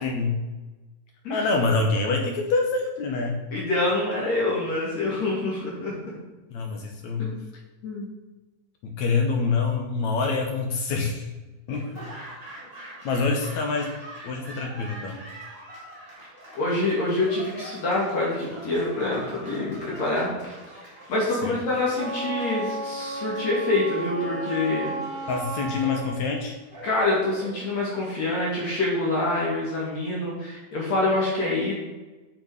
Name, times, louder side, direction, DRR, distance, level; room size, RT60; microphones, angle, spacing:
voice 1, 0.0-0.4 1.3-3.4 6.5-7.3 8.8-11.3 11.7-12.0 13.0-14.0 14.2-15.2 21.4-21.6 25.3-26.6, left 4 dB, 70° left, 2 dB, 1.8 m, -26 dB
voice 2, 3.5-5.9 7.2-7.3 7.8-8.1 16.5-20.8 21.1-24.9 26.8-31.7, left 2 dB, 50° left, -5 dB, 3.2 m, -26 dB
Laughter / Applause, 11.7-29.8, right 1 dB, 20° right, 2.1 m, -44 dB
Wind instrument woodwind instrument, 21.9-26.3, right 2 dB, 45° right, 2.2 m, -33 dB
8.8 x 6.5 x 5.0 m, 1.2 s
omnidirectional pair, 4.4 m